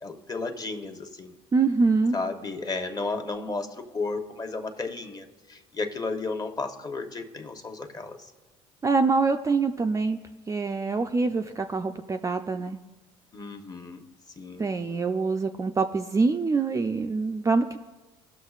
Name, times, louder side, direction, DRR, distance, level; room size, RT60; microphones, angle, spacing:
voice 1, 0.0-1.4 2.1-8.3 13.3-14.0 14.4-14.7, left 3 dB, 25° left, 5 dB, 1.0 m, -33 dB
voice 2, 1.5-2.2 8.8-10.2 10.5-12.8 14.6-17.9, right 4 dB, 20° right, 5 dB, 0.4 m, -25 dB
17.5 x 6.2 x 2.4 m, 1.2 s
supercardioid pair, 85°, 15 cm